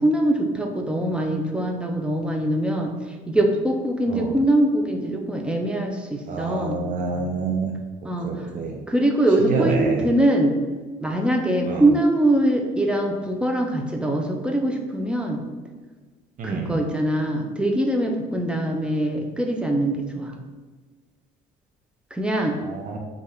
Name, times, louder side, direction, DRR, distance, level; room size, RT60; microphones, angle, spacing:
voice 1, 0.0-2.9 3.3-6.8 8.0-8.3 8.9-10.6 11.0-15.4 16.4-20.4 22.1-22.6, right 1 dB, 5° right, 2 dB, 0.6 m, -22 dB
voice 2, 6.3-7.7 8.2-8.8 9.5-10.1 11.7-11.8 16.4-16.8 22.6-23.0, right 4 dB, 50° right, 0 dB, 0.6 m, -27 dB
5.4 x 2.5 x 3.6 m, 1.3 s
cardioid pair, 110°, 17 cm